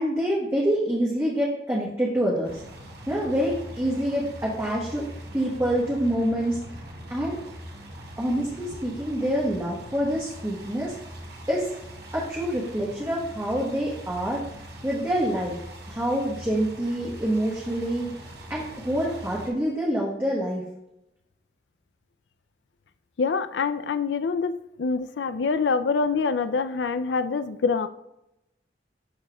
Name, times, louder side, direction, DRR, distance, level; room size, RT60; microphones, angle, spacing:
voice 1, 0.0-2.6 3.1-5.0 5.3-6.6 7.1-7.4 8.2-10.9 11.5-11.7 12.1-14.4 14.8-15.6 15.9-18.1 18.5-20.6, equal, 15° right, -5 dB, 1.1 m, -26 dB
sound 1, 2.4-19.5, equal, 65° right, 1.8 m, -42 dB
voice 2, 23.2-27.9, left 4 dB, 85° left, 13 dB, 0.4 m, -25 dB
11.5 x 4.3 x 2.3 m, 0.87 s
head